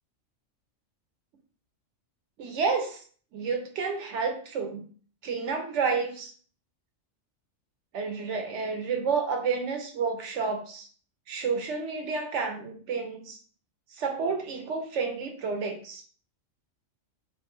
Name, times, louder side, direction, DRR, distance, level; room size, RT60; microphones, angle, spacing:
voice 1, 2.4-3.0 3.3-4.8 5.2-6.3 7.9-10.9 11.3-13.4 13.9-16.0, right 5 dB, 65° right, 4 dB, 0.9 m, -30 dB
2.5 x 2.3 x 2.9 m, 0.44 s
omnidirectional pair, 1.4 m